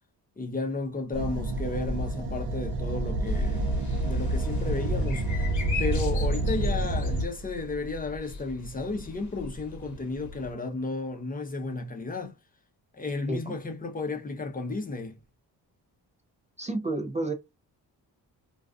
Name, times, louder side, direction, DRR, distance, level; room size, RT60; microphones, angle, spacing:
voice 1, 0.4-3.7 4.0-5.2 5.8-12.3 13.0-15.2, left 3 dB, 20° left, 0.6 m, -33 dB
sound 1, 1.1-7.3, right 1 dB, 70° right, 0.6 m, -28 dB
sound 2, 3.2-10.5, left 2 dB, 45° left, 0.9 m, -39 dB
voice 2, 16.6-17.3, right 2 dB, 20° right, 0.3 m, -30 dB
2.4 x 2.3 x 2.3 m
cardioid pair, 90°, 42 cm